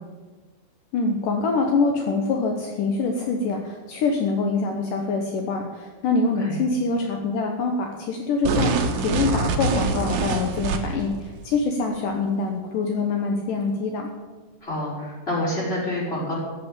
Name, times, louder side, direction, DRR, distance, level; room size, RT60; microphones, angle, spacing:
voice 1, 0.9-14.1, left 4 dB, 70° left, 3 dB, 2.0 m, -25 dB
sound 1, 8.4-11.1, right 4 dB, 70° right, 1.8 m, -24 dB
voice 2, 14.6-16.3, left 1 dB, 10° left, -6 dB, 5.7 m, -27 dB
14.5 x 8.0 x 9.7 m, 1.4 s
omnidirectional pair, 5.3 m